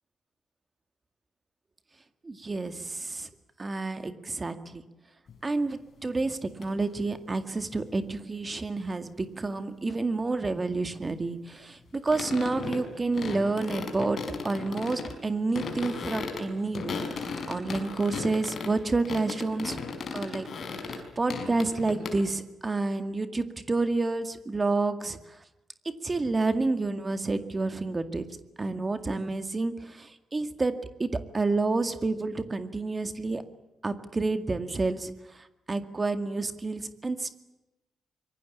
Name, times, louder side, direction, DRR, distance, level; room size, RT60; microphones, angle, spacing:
voice 1, 2.2-3.3 3.6-4.8 5.4-17.2 17.5-19.8 20.1-20.5 20.7-25.4 25.8-28.3 28.6-30.7 31.0-33.4 33.8-37.4, right 3 dB, 20° right, 10 dB, 2.1 m, -29 dB
sound 1, 5.3-5.4 6.6-6.7 12.1-12.9 13.1-15.2 15.5-18.7 19.0-22.2, left 4 dB, 45° left, 5.4 m, -36 dB
25.5 x 23.0 x 8.6 m, 0.96 s
wide cardioid pair, 160°, 0 cm